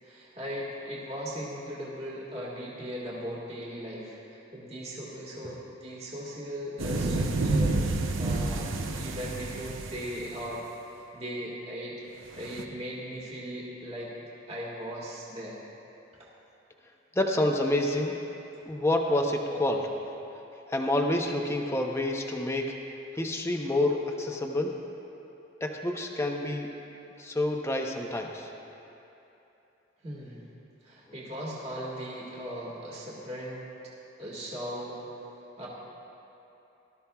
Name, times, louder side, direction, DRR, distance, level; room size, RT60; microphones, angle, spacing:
voice 1, 0.0-10.6 10.9-12.0 12.3-14.2 14.5-15.6 16.2-16.3 30.0-30.4 30.8-33.9 34.2-35.3 35.6-35.7, equal, 35° right, -5 dB, 1.8 m, -38 dB
sound 1, 6.8-10.5 12.4-12.6, right 2 dB, 90° right, 0.7 m, -29 dB
voice 2, 17.2-18.3 18.7-19.9 20.7-22.8 23.2-24.8 25.6-26.8 27.2-28.5, left 1 dB, 15° left, 1 dB, 0.7 m, -28 dB
19.0 x 12.5 x 2.3 m, 3.0 s
head